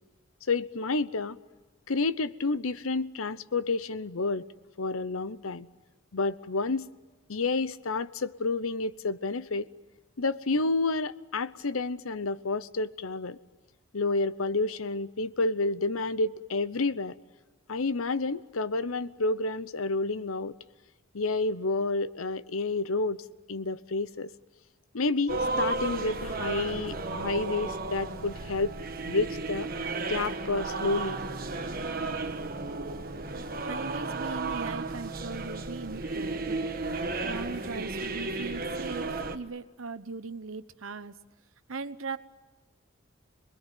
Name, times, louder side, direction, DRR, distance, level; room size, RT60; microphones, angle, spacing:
voice 1, 0.5-1.4 1.9-4.4 4.8-5.7 6.1-6.9 7.3-9.7 10.2-13.4 13.9-17.1 17.7-20.5 21.1-23.2 23.5-24.3 24.9-28.7 29.1-29.7 30.1-31.2, left 3 dB, 80° left, 0.8 m, -29 dB
sound 1, 25.3-39.4, right 3 dB, 45° right, 1.3 m, -33 dB
voice 2, 33.6-36.7 37.2-41.1 41.7-42.2, right 4 dB, 75° right, 1.0 m, -39 dB
26.5 x 21.0 x 9.1 m
head